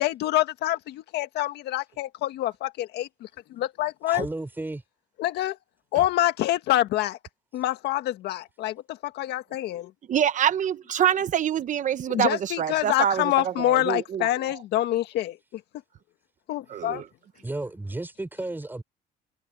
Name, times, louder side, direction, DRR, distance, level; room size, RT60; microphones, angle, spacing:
voice 1, 0.0-4.3 5.2-5.6 5.9-7.2 7.5-9.9 12.1-15.6 16.5-17.0, left 14 dB, 80° left, 1.9 m, -26 dB
voice 2, 4.1-4.8 17.4-18.8, right 2 dB, 10° right, 4.3 m, -33 dB
voice 3, 10.1-13.3 13.6-14.2 16.7-17.0, right 9 dB, 50° right, 1.1 m, -25 dB
cardioid pair, 110°, 17 cm